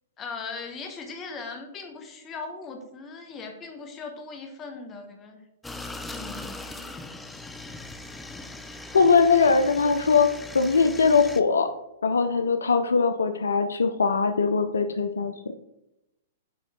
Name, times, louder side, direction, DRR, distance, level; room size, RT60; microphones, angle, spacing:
voice 1, 0.2-5.4 6.1-7.0, left 4 dB, 25° left, 5 dB, 1.5 m, -39 dB
sound 1, 5.6-11.4, left 2 dB, 10° left, 0.6 m, -40 dB
voice 2, 8.9-11.7 12.0-15.3, left 5 dB, 80° left, 9 dB, 0.5 m, -21 dB
9.9 x 3.7 x 3.7 m, 0.88 s
hypercardioid pair, 115°, 0 cm